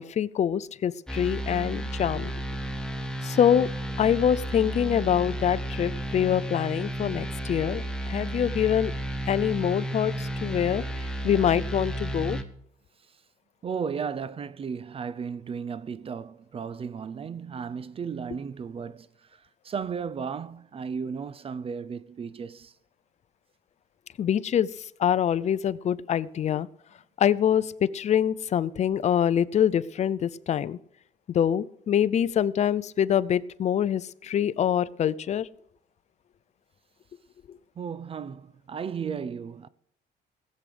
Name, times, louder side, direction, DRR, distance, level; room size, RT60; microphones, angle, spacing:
voice 1, 0.0-2.3 3.2-3.7 4.0-8.9 9.3-10.8 11.2-12.4 24.2-24.7 25.0-26.7 27.2-30.8 31.3-35.5, left 9 dB, 40° left, 0.5 m, -25 dB
sound 1, 1.1-12.4, right 1 dB, 5° left, 1.4 m, -32 dB
voice 2, 13.6-19.1 19.6-22.7 37.8-39.7, right 6 dB, 35° right, 0.5 m, -34 dB
18.0 x 7.8 x 5.1 m
cardioid pair, 110°, 17 cm